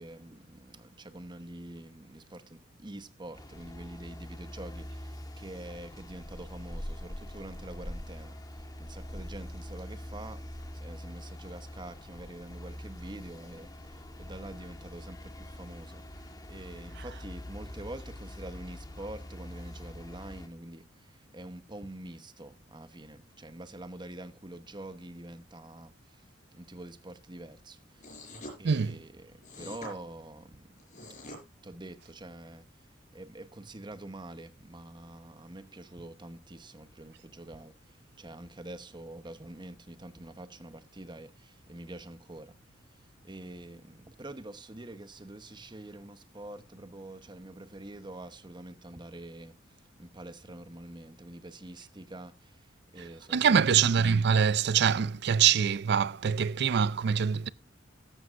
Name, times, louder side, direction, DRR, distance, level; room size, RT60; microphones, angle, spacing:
voice 1, 0.0-53.8, right 1 dB, 25° right, 1.0 m, -46 dB
sound 1, 3.3-20.5, left 1 dB, 20° left, 1.5 m, -44 dB
sound 2, 28.0-28.6 29.4-29.9 30.8-31.4, left 1 dB, 40° left, 5.6 m, -44 dB
voice 2, 28.6-29.0 53.3-57.5, right 7 dB, 60° right, 0.5 m, -24 dB
14.0 x 12.5 x 2.5 m
head